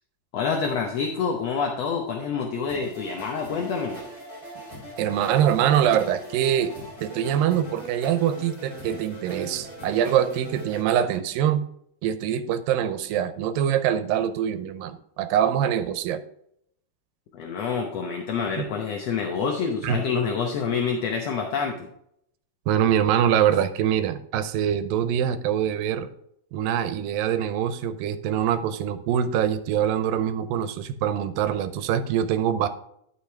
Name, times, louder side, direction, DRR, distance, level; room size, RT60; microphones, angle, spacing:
voice 1, 0.3-4.0 17.3-21.9, left 5 dB, 70° left, 2 dB, 1.6 m, -27 dB
sound 1, 2.7-10.8, right 1 dB, 10° left, 2.9 m, -40 dB
voice 2, 5.0-6.7 7.0-11.6 12.0-16.2 18.6-18.7 19.8-20.0 22.7-26.1 26.5-32.7, right 9 dB, 85° right, 11 dB, 2.4 m, -24 dB
11.5 x 6.2 x 3.4 m, 0.72 s
omnidirectional pair, 4.0 m